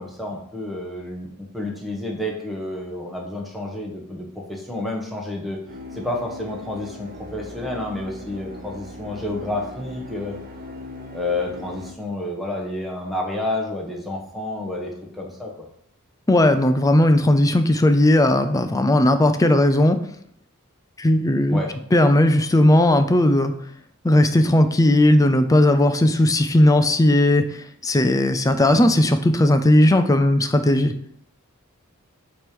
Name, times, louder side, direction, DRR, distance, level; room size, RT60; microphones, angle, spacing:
voice 1, 0.0-5.6 5.9-10.4 11.1-15.7 21.5-21.7, left 2 dB, ahead, -1 dB, 1.2 m, -30 dB
sound 1, 5.7-11.9, left 1 dB, 40° right, 0.8 m, -39 dB
voice 2, 16.3-20.0 21.0-21.6 21.9-23.5 24.0-30.9, left 1 dB, 15° left, 8 dB, 0.4 m, -17 dB
7.7 x 3.1 x 5.2 m, 0.68 s
head